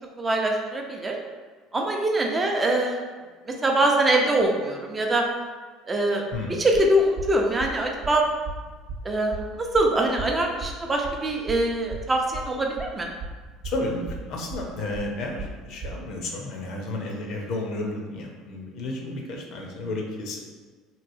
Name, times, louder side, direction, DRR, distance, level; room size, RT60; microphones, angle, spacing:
voice 1, 0.2-1.1 1.7-3.0 3.5-5.2 5.9-6.2 6.6-8.2 9.0-13.1, right 1 dB, 25° right, 1 dB, 0.5 m, -23 dB
sound 1, 6.3-16.0, right 3 dB, 65° right, 0.9 m, -37 dB
voice 2, 13.6-20.5, left 2 dB, 65° left, 0 dB, 0.6 m, -32 dB
2.9 x 2.7 x 2.7 m, 1.4 s
hypercardioid pair, 75°, 0 cm